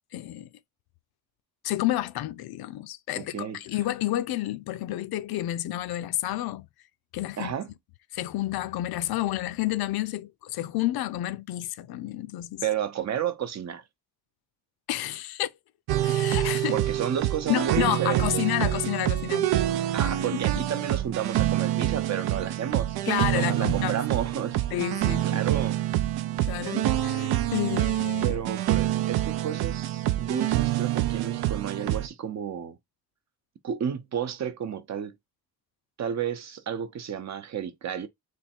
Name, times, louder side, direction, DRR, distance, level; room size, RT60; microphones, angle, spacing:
voice 1, 0.1-0.5 1.6-6.7 7.1-7.5 8.1-12.6 14.9-15.5 16.0-16.8 17.5-19.5 23.1-24.0 24.7-25.4 26.4-28.4, left 14 dB, 80° left, 0.5 m, -30 dB
voice 2, 3.1-3.6 7.4-7.7 12.6-13.8 16.7-18.4 19.9-23.0 23.3-24.6 25.1-25.8 28.2-32.8 33.6-35.1 36.0-38.1, right 8 dB, 45° right, 0.7 m, -32 dB
sound 1, 15.9-32.1, right 13 dB, 85° right, 0.6 m, -26 dB
3.4 x 3.2 x 4.3 m
cardioid pair, 155°, 37 cm